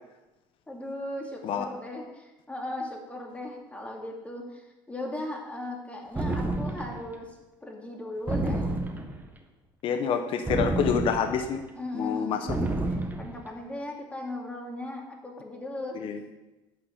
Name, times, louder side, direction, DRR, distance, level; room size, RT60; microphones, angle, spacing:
voice 1, 0.7-4.6 4.9-7.3 7.6-8.6 11.8-16.0, left 1 dB, 10° left, 0 dB, 2.6 m, -37 dB
sound 1, 6.1-7.0 8.3-9.2 10.5-11.5 12.5-13.3, right 2 dB, 15° right, 1.5 m, -29 dB
voice 2, 9.8-11.6 11.9-12.5 16.0-16.2, left 7 dB, 55° left, 7 dB, 1.0 m, -27 dB
9.2 x 5.6 x 8.2 m, 1.0 s
supercardioid pair, 105°, 11 cm